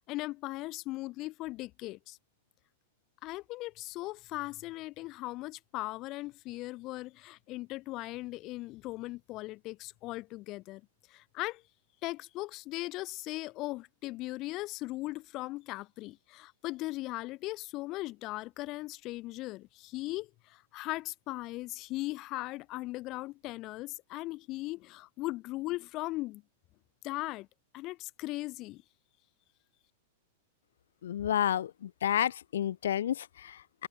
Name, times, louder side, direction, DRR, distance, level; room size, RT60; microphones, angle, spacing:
voice 1, 0.0-2.2 3.2-10.8 11.1-11.6 12.0-26.4 27.0-27.5 27.7-28.8, left 19 dB, 40° left, 1.0 m, -38 dB
voice 2, 31.0-33.9, left 10 dB, 70° left, 0.3 m, -31 dB
hypercardioid pair, 100°, 0 cm